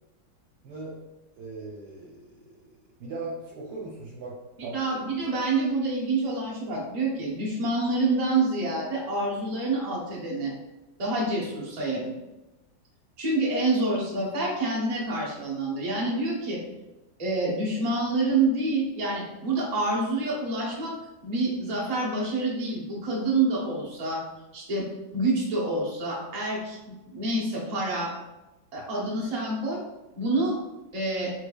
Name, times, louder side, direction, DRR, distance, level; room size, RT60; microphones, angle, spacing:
voice 1, 0.6-1.0 1.3-2.7 3.0-4.8, right 3 dB, 70° right, -4 dB, 1.2 m, -39 dB
voice 2, 4.6-10.5 11.0-12.1 13.2-16.6 17.2-20.9 21.2-24.2 24.5-24.9 25.1-28.1 28.7-29.8 30.2-30.6 30.9-31.3, right 2 dB, 50° right, -4 dB, 0.4 m, -27 dB
3.8 x 3.2 x 2.3 m, 1.0 s
omnidirectional pair, 2.0 m